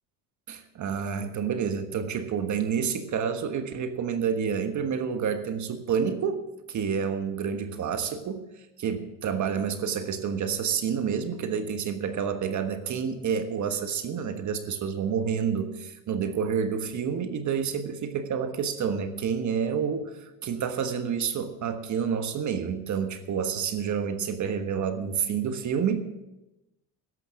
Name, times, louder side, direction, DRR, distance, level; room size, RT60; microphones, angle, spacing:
voice 1, 0.5-6.4 6.7-8.4 8.8-26.0, right 7 dB, 45° right, 8 dB, 1.4 m, -29 dB
13.5 x 11.0 x 5.9 m, 0.96 s
supercardioid pair, 105°, 40 cm